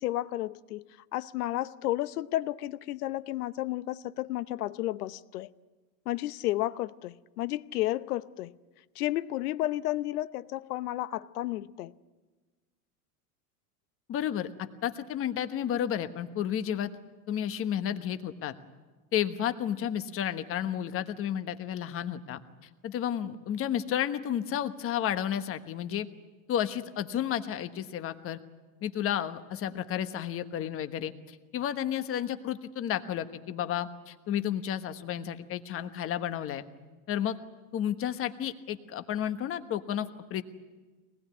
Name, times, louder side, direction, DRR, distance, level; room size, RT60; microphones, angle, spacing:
voice 1, 0.0-5.5 6.1-8.5 9.0-11.9, left 15 dB, 85° left, 0.9 m, -32 dB
voice 2, 14.1-16.9 17.3-18.5 19.1-22.4 22.8-26.1 26.5-28.4 28.8-36.6 37.1-37.4 37.7-40.4, left 10 dB, 30° left, 1.3 m, -32 dB
24.0 x 20.0 x 9.5 m
supercardioid pair, 140°, 44 cm